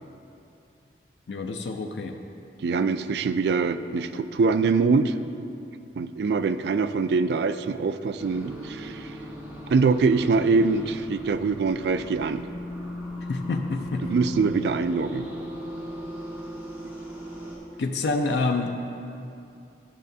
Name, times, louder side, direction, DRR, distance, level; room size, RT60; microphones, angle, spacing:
voice 1, 1.3-2.2 13.3-14.1 17.8-18.7, left 3 dB, 75° left, 3 dB, 0.4 m, -27 dB
voice 2, 2.6-5.2 6.0-9.1 9.7-12.4 14.0-15.3, right 4 dB, 65° right, 11 dB, 0.3 m, -24 dB
sound 1, 8.2-17.6, left 1 dB, 10° right, 1.3 m, -37 dB
12.5 x 6.3 x 2.7 m, 2.6 s
head